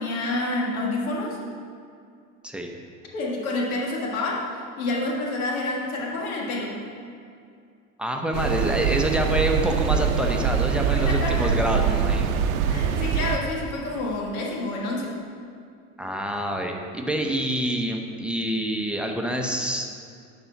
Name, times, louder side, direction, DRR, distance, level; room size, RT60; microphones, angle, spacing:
voice 1, 0.0-1.4 3.1-4.5 4.8-6.8 10.9-11.5 12.7-15.1, left 2 dB, 85° left, -2 dB, 1.6 m, -28 dB
voice 2, 2.4-2.7 8.0-12.3 16.0-19.9, equal, ahead, 2 dB, 0.8 m, -27 dB
sound 1, 8.3-13.4, right 7 dB, 80° right, 0.7 m, -23 dB
11.0 x 4.2 x 4.6 m, 2.4 s
hypercardioid pair, 85°, 42 cm